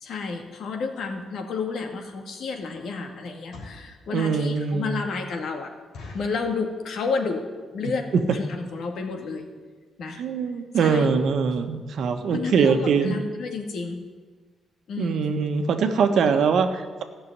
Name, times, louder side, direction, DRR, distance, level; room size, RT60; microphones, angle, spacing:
voice 1, 0.0-5.7 6.1-7.5 7.7-9.5 10.0-10.2 10.7-11.1 12.3-14.0 14.9-15.2 16.2-16.3, left 4 dB, 70° left, 4 dB, 2.0 m, -31 dB
sound 1, 1.7-1.9 2.4-2.6 3.3-3.9 4.5-4.6 4.9-5.0 5.3-5.4 5.9-6.4 7.0-7.3 7.6-7.7 7.9-8.2 8.7-8.8 9.0-9.2 9.6-9.7 9.9-10.0, left 3 dB, 85° left, 3.6 m, -43 dB
voice 2, 4.1-5.0 8.1-8.2 10.2-13.2 15.0-17.0, right 5 dB, 70° right, 7 dB, 1.2 m, -22 dB
14.5 x 6.8 x 9.6 m, 1.4 s
cardioid pair, 115°, 0 cm